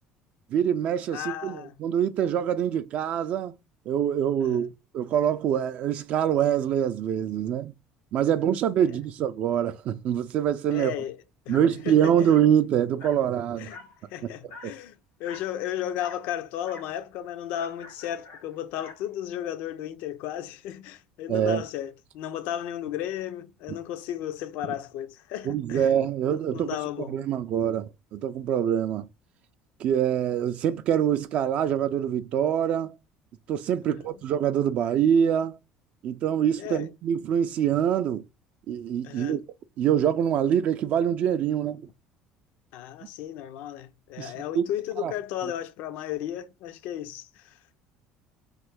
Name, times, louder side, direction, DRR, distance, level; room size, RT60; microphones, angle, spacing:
voice 1, 0.5-3.5 3.9-7.7 8.1-10.9 11.5-13.7 14.6-14.7 21.3-21.6 25.5-26.8 27.1-29.1 29.8-32.9 33.5-35.6 36.0-38.2 38.7-39.4 39.8-41.9 44.2-44.6 45.0-45.1, right 9 dB, 55° right, 0.3 m, -25 dB
voice 2, 1.1-1.7 4.4-4.7 8.9-9.0 10.7-12.3 13.6-13.8 14.1-25.9 26.2-27.2 33.8-34.2 36.6-36.9 39.0-39.4 42.7-47.6, left 11 dB, 75° left, 0.5 m, -34 dB
Dog, 11.5-11.7 12.3-12.5 13.0-13.3 13.7-14.0 14.5-14.7 15.2-15.5 16.0-16.3 16.6-16.9 17.6-19.0, left 3 dB, 90° left, 1.8 m, -45 dB
3.0 x 2.6 x 3.5 m
cardioid pair, 120°, 3 cm